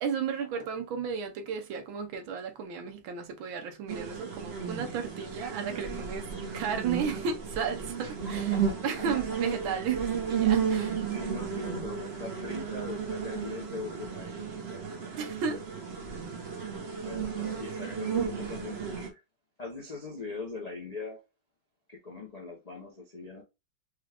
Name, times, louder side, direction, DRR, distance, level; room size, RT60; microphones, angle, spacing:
voice 1, 0.0-8.5 8.8-11.0 15.2-15.6, right 6 dB, 75° right, 1.6 m, -34 dB
sound 1, 3.9-19.1, right 7 dB, 40° right, 1.0 m, -33 dB
voice 2, 8.0-9.2 10.7-15.6 17.0-18.8 19.1-19.2 19.6-21.2 21.9-23.4, left 3 dB, 50° left, 0.4 m, -42 dB
5.0 x 2.4 x 3.3 m
omnidirectional pair, 2.2 m